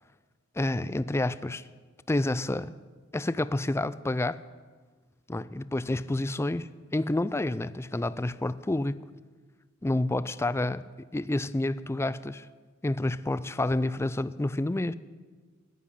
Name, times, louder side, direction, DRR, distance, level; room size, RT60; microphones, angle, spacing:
voice 1, 0.6-1.7 2.1-2.7 3.1-4.4 5.3-9.0 9.8-10.8 11.1-12.5 12.8-14.9, left 2 dB, 10° left, 16 dB, 0.4 m, -29 dB
14.5 x 9.9 x 9.8 m, 1.4 s
head